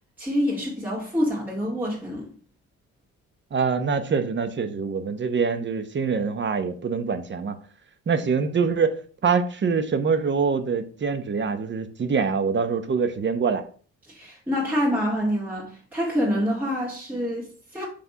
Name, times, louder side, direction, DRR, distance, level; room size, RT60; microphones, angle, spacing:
voice 1, 0.2-2.3 14.1-17.8, equal, 5° right, 2.2 m, -26 dB
voice 2, 3.5-7.6 8.1-13.6, right 5 dB, 40° right, 0.9 m, -24 dB
6.0 x 3.4 x 5.4 m
cardioid pair, 90°, 30 cm